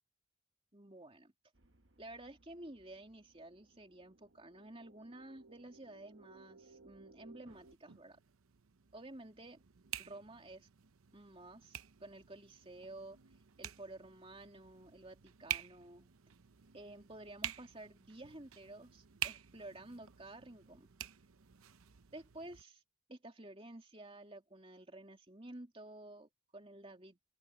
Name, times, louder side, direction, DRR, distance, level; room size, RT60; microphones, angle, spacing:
voice 1, 0.7-1.3 2.0-8.2 8.9-9.6 10.0-10.7 11.1-13.2 13.6-16.1 16.7-20.9 22.1-22.8 23.1-27.2, right 2 dB, 25° right, 2.8 m, -52 dB
sound 1, 1.5-7.7, right 3 dB, 55° right, 1.4 m, -63 dB
sound 2, 7.5-22.6, right 11 dB, 85° right, 0.8 m, -48 dB
head